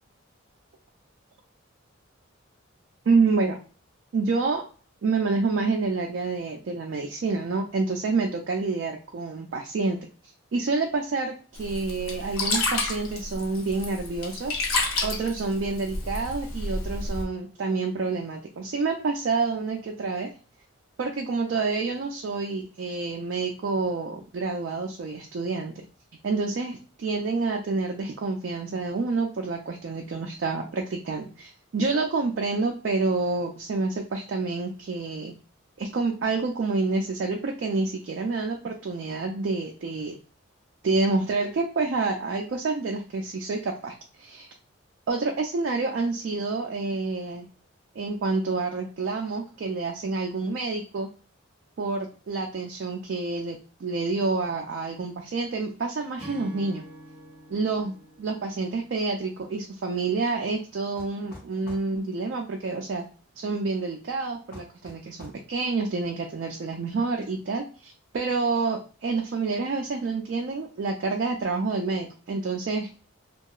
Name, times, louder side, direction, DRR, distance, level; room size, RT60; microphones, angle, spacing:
voice 1, 3.1-3.6 4.1-4.6 5.0-10.0 10.5-14.5 15.0-20.3 21.0-25.8 26.2-35.3 35.8-40.2 40.8-44.5 45.1-47.5 48.0-51.1 51.8-56.8 57.5-57.9 58.2-63.0 63.4-73.0, right 3 dB, 55° right, 2 dB, 0.3 m, -28 dB
Sink (filling or washing), 11.5-17.2, left 3 dB, 80° left, 0.7 m, -30 dB
Acoustic guitar / Strum, 56.2-59.6, equal, 15° right, 1.0 m, -47 dB
sound 1, 61.0-61.9 64.5-65.4, left 1 dB, 45° left, 0.7 m, -46 dB
2.8 x 2.3 x 2.3 m, 0.37 s
head